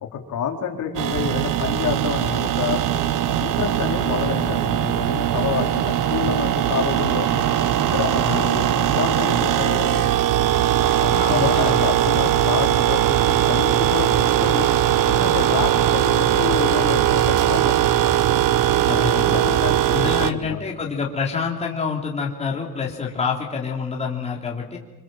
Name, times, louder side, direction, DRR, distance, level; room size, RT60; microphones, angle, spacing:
voice 1, 0.0-2.8 3.2-7.3 7.7-10.1 11.0-13.2 13.5-14.7 15.0-17.7 19.0-20.6, left 7 dB, 55° left, 2 dB, 4.4 m, -28 dB
sound 1, 1.0-20.3, right 11 dB, 60° right, 1.3 m, -20 dB
voice 2, 7.0-7.7 8.2-8.4 11.1-11.8 18.8-19.3 19.9-24.8, left 5 dB, 20° left, -1 dB, 3.2 m, -27 dB
28.0 x 26.0 x 7.7 m, 1.1 s
cardioid pair, 165°, 36 cm